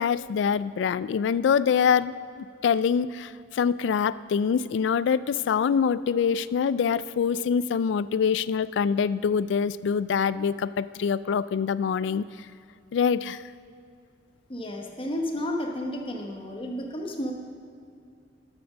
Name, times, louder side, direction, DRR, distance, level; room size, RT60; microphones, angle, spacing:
voice 1, 0.0-12.3 12.9-13.4, left 6 dB, 70° left, 17 dB, 0.3 m, -25 dB
voice 2, 14.5-17.3, left 1 dB, 30° left, 2 dB, 1.1 m, -32 dB
12.0 x 6.1 x 6.3 m, 2.5 s
head